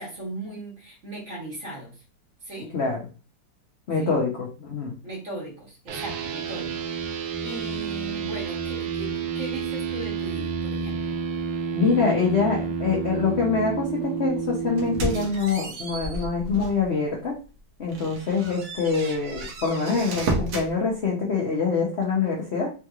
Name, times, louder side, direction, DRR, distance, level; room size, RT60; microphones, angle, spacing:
voice 1, 0.0-2.0 2.4-2.7 4.0-4.1 5.0-6.8 7.4-11.2, right 1 dB, 40° right, -3 dB, 1.6 m, -38 dB
voice 2, 3.9-4.9 11.7-17.3 17.8-22.7, left 4 dB, 70° left, -2 dB, 0.6 m, -25 dB
sound 1, 5.9-15.3, right 6 dB, 80° right, 1.4 m, -30 dB
sound 2, 14.8-16.9 17.3-17.4 17.9-20.7, right 2 dB, 65° right, 0.8 m, -32 dB
3.7 x 2.9 x 2.4 m, 0.35 s
omnidirectional pair, 2.2 m